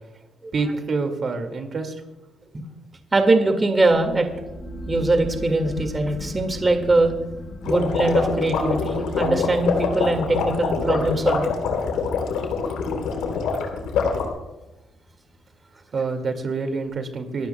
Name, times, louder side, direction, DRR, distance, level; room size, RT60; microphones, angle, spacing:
voice 1, 0.5-2.0 2.5-2.6 15.9-17.5, right 4 dB, 50° right, 5 dB, 2.0 m, -27 dB
voice 2, 3.1-4.3 4.9-7.1 7.6-11.5, right 2 dB, 25° right, 5 dB, 1.9 m, -21 dB
sound 1, 3.9-15.0, left 2 dB, 45° left, 3.4 m, -40 dB
sound 2, 7.6-14.3, left 5 dB, 85° left, 3.2 m, -25 dB
26.5 x 12.5 x 2.2 m, 1.1 s
cardioid pair, 90°, 0 cm